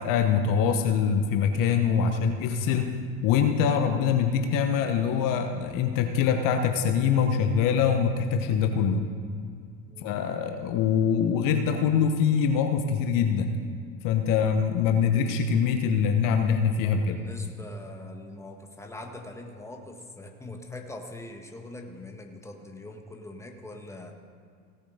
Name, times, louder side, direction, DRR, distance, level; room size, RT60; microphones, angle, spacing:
voice 1, 0.0-2.9 3.2-9.1 10.0-13.5 14.0-17.2, left 7 dB, 50° left, 6 dB, 1.1 m, -24 dB
voice 2, 1.9-2.2 9.9-10.2 16.8-24.1, left 2 dB, 5° left, 3 dB, 1.6 m, -43 dB
17.0 x 8.5 x 5.0 m, 2.2 s
hypercardioid pair, 80°, 42 cm